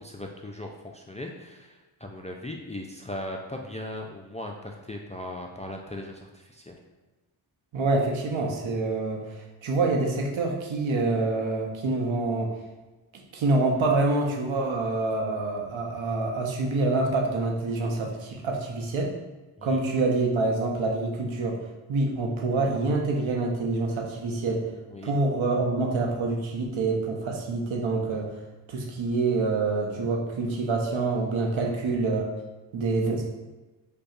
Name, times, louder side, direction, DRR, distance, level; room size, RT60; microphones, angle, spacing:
voice 1, 0.0-6.8 19.6-19.8 24.9-25.2 31.5-31.7, left 1 dB, 15° left, 1 dB, 0.3 m, -38 dB
voice 2, 7.7-9.2 9.6-12.5 13.3-19.1 19.6-21.6 21.9-24.7 25.0-28.3 28.7-32.3 32.7-33.3, right 3 dB, 70° right, 1 dB, 0.8 m, -26 dB
5.1 x 2.3 x 2.4 m, 1.1 s
cardioid pair, 40°, 50 cm